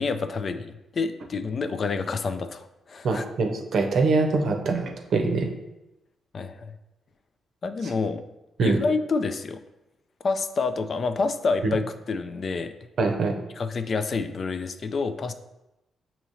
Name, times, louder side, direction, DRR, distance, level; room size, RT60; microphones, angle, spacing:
voice 1, 0.0-3.2 6.3-6.7 7.6-8.2 8.6-9.6 10.2-12.7 13.5-15.3, left 4 dB, 55° left, 9 dB, 0.3 m, -28 dB
voice 2, 3.0-5.5 8.6-8.8 11.6-11.8 13.0-13.3, right 3 dB, 65° right, 3 dB, 0.6 m, -23 dB
6.1 x 2.8 x 2.7 m, 0.94 s
supercardioid pair, 50°, 0 cm